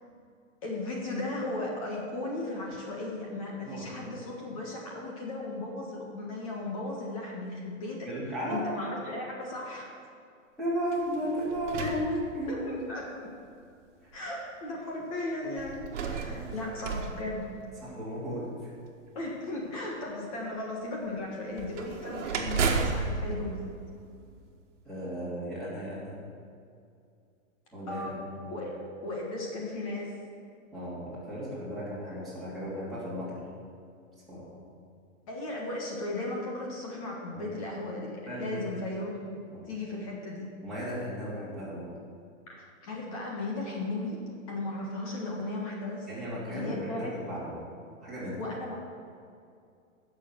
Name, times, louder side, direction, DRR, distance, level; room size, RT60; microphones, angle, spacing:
voice 1, 0.6-8.1 8.5-9.9 11.8-11.9 12.5-13.1 14.1-17.5 19.1-23.6 27.9-28.2 28.5-30.2 35.3-39.4 39.7-40.5 42.5-44.2 44.5-46.1 46.5-47.1 48.4-48.8, left 2 dB, 25° left, -2 dB, 1.5 m, -36 dB
voice 2, 3.6-4.1 8.0-8.6 10.6-12.9 14.0-14.1 16.2-16.5 17.8-18.7 24.8-26.2 27.7-28.6 30.7-33.5 34.3-34.6 37.3-37.5 38.3-38.9 39.5-39.7 40.6-41.9 46.1-47.6 48.0-48.4, equal, ahead, -11 dB, 2.8 m, -35 dB
sound 1, 10.9-12.9 13.6-13.7 15.6-18.1 21.5-24.6, right 4 dB, 60° right, 1.6 m, -34 dB
16.0 x 6.8 x 6.1 m, 2.4 s
hypercardioid pair, 180°, 40 cm